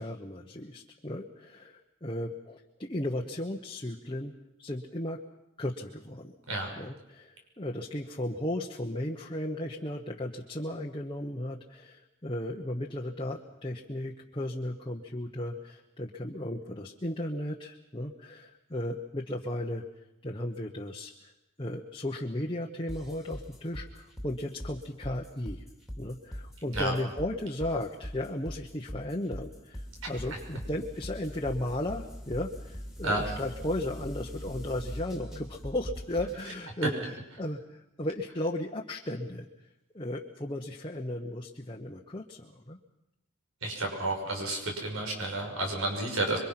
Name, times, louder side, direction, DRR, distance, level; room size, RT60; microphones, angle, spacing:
voice 1, 0.0-4.3 4.6-5.2 5.6-6.3 6.8-19.8 20.2-21.3 21.6-25.6 26.0-39.5 39.9-42.8, left 1 dB, 25° left, 0 dB, 1.1 m, -35 dB
sound 1, 22.9-36.5, equal, ahead, 2.7 m, -41 dB
voice 2, 43.6-46.4, right 2 dB, 80° right, 2 dB, 5.8 m, -31 dB
26.5 x 23.5 x 5.9 m, 0.88 s
head